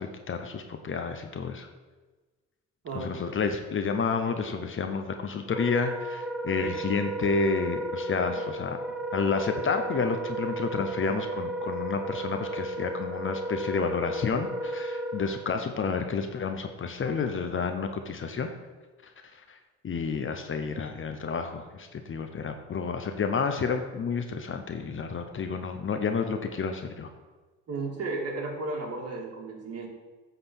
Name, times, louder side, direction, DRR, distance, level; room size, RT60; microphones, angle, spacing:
voice 1, 0.0-1.7 2.9-8.8 9.1-18.5 19.0-19.6 19.8-27.1, left 5 dB, 40° left, 6 dB, 0.9 m, -30 dB
voice 2, 2.8-3.2 8.3-8.4 27.7-29.9, right 3 dB, 55° right, 0 dB, 2.2 m, -34 dB
Wind instrument woodwind instrument, 5.4-15.5, right 1 dB, 5° right, 0.8 m, -34 dB
9.8 x 4.1 x 7.1 m, 1.3 s
cardioid pair, 90°, 30 cm